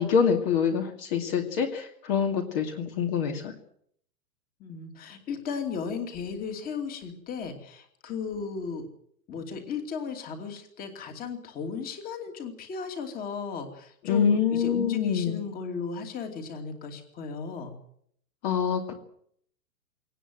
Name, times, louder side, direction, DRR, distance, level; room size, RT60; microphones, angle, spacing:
voice 1, 0.0-3.5 14.0-15.4 18.4-18.9, left 7 dB, 35° left, 4 dB, 2.5 m, -25 dB
voice 2, 4.6-8.9 9.3-17.8, left 5 dB, 15° left, 5 dB, 2.8 m, -35 dB
22.5 x 18.5 x 7.9 m, 0.66 s
hypercardioid pair, 160°, 49 cm